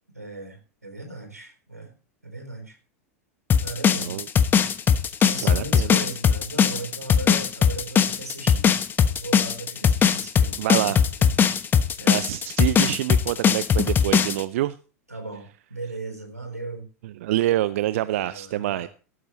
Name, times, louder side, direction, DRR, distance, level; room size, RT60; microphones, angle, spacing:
voice 1, 0.1-1.9 2.2-2.8 3.6-4.2 5.2-8.8 9.1-11.4 12.0-12.3 15.1-16.9 18.0-18.9, right 2 dB, 90° right, 3.9 m, -37 dB
sound 1, 3.5-14.4, left 7 dB, 25° left, 1.1 m, -19 dB
voice 2, 5.4-6.0 10.6-11.0 12.1-14.8 17.0-18.9, right 15 dB, 55° right, 0.5 m, -26 dB
17.0 x 13.0 x 3.1 m
figure-of-eight pair, 90°, 8 cm